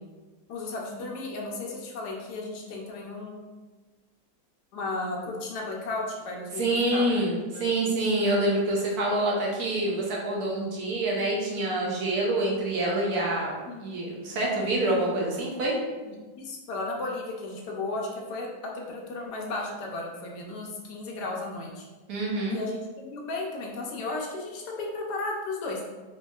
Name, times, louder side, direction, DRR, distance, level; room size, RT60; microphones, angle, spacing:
voice 1, 0.5-3.4 4.7-7.1 7.5-8.3 13.7-14.0 16.0-18.5 18.7-21.8 22.5-25.8, left 2 dB, 70° left, -1 dB, 1.1 m, -34 dB
voice 2, 6.6-13.5 13.8-15.8 22.1-22.6, right 1 dB, 65° right, -3 dB, 1.2 m, -26 dB
4.4 x 2.8 x 2.3 m, 1.3 s
omnidirectional pair, 1.9 m